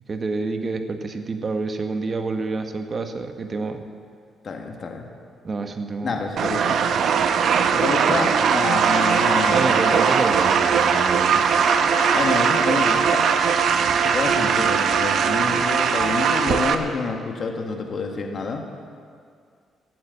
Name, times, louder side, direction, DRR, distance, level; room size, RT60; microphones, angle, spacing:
voice 1, 0.1-3.8 5.4-6.2 8.1-8.4 9.5-11.4 12.7-12.8, right 3 dB, 40° right, 6 dB, 1.3 m, -28 dB
voice 2, 4.4-5.1 6.0-6.8 7.7-9.9 12.1-13.3 14.0-18.6, left 4 dB, 50° left, 3 dB, 1.7 m, -28 dB
sound 1, 6.4-16.8, right 6 dB, 65° right, 0.9 m, -20 dB
Bowed string instrument, 8.8-13.8 15.3-15.4, left 11 dB, 90° left, 0.6 m, -36 dB
15.0 x 8.6 x 8.4 m, 2.2 s
cardioid pair, 90°, 0 cm